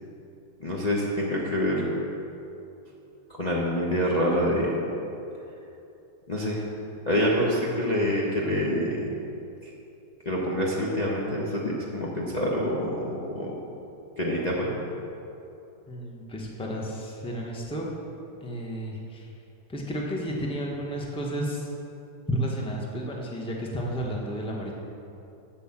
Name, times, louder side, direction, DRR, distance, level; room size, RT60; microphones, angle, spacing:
voice 1, 0.6-1.9 3.4-4.8 6.3-6.6 7.1-9.0 9.6-9.7 10.2-13.5 14.2-14.8, equal, 30° left, -5 dB, 1.1 m, -26 dB
voice 2, 15.9-17.9 18.4-19.2 19.7-21.7 22.3-24.7, equal, 5° left, -2 dB, 1.1 m, -32 dB
8.2 x 7.8 x 7.4 m, 2.8 s
omnidirectional pair, 1.8 m